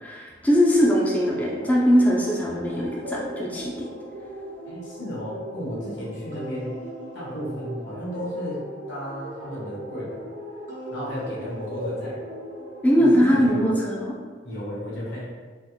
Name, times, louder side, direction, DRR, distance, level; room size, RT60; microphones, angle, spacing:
voice 1, 0.0-3.9 12.8-14.1, equal, 10° left, -4 dB, 0.3 m, -21 dB
sound 1, 0.8-13.5, equal, 75° right, 0.8 m, -38 dB
voice 2, 4.7-6.7 7.1-8.6 8.9-10.2 10.9-12.2 13.0-13.7 14.4-15.2, equal, 85° left, -7 dB, 1.2 m, -33 dB
3.5 x 2.8 x 2.3 m, 1.5 s
head